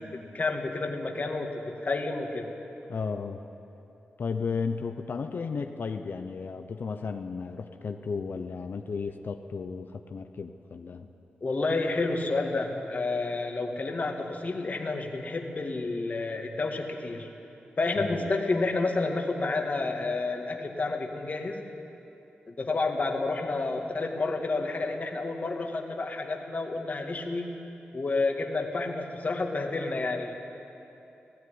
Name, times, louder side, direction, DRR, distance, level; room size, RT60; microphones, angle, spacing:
voice 1, 0.3-2.5 11.4-17.3 17.8-21.7 22.5-27.6 27.9-30.4, left 3 dB, 45° left, 2 dB, 2.1 m, -30 dB
voice 2, 2.9-3.4 4.2-11.1 18.0-18.3, left 5 dB, 65° left, 6 dB, 0.9 m, -34 dB
17.0 x 16.0 x 9.7 m, 2.9 s
cardioid pair, 75°, 4 cm